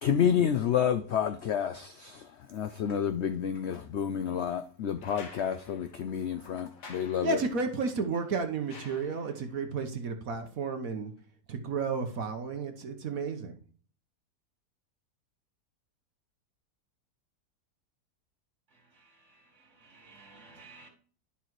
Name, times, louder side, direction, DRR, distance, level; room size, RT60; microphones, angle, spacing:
voice 1, 0.0-7.4, left 8 dB, 70° left, 0.6 m, -29 dB
sound 1, 5.0-9.6 11.2-11.3, left 3 dB, 90° left, 2.3 m, -52 dB
voice 2, 7.2-11.1 11.5-13.6, right 4 dB, 65° right, 1.4 m, -32 dB
voice 3, 18.7-20.9, right 3 dB, 45° right, 2.4 m, -55 dB
11.5 x 5.8 x 3.1 m
omnidirectional pair, 1.7 m